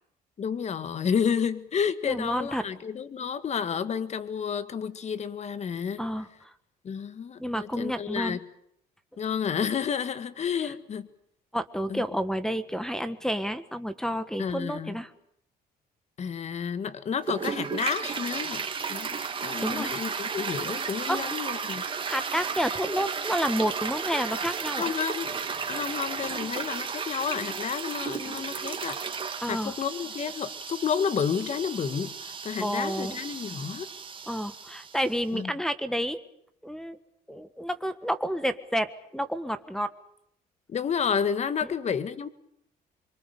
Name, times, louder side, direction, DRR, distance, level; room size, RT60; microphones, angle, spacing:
voice 1, 0.4-6.0 6.8-8.4 9.2-11.1 11.9-12.0 14.4-15.0 16.2-18.6 18.9-19.2 19.4-21.8 24.8-25.4 25.7-29.0 29.5-33.9 35.3-35.5 40.7-42.3, left 7 dB, 40° left, 13 dB, 1.7 m, -30 dB
voice 2, 2.0-2.6 6.0-6.5 7.4-8.4 10.6-10.7 11.5-15.1 19.6-19.9 21.1-21.2 22.0-24.9 29.4-29.7 32.6-33.2 34.3-36.2 36.6-37.0 37.3-39.9 41.6-41.7, equal, 5° left, 12 dB, 1.5 m, -30 dB
Toilet flush, 17.2-35.2, right 6 dB, 30° right, 2.7 m, -34 dB
25.0 x 24.0 x 6.9 m, 0.73 s
cardioid pair, 110°, 17 cm